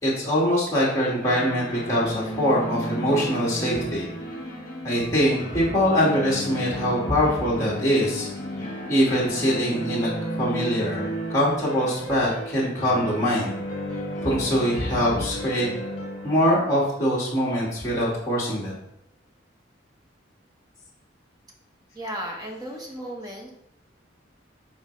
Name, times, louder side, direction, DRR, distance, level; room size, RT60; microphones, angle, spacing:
voice 1, 0.0-4.1 4.8-8.3 8.9-10.1 10.4-13.5 14.2-15.7 16.2-18.7, equal, 15° left, -7 dB, 1.9 m, -23 dB
sound 1, 1.2-17.9, equal, 40° left, 2.1 m, -34 dB
voice 2, 21.9-23.5, equal, 20° right, 0 dB, 1.3 m, -35 dB
8.8 x 4.5 x 3.3 m, 0.75 s
head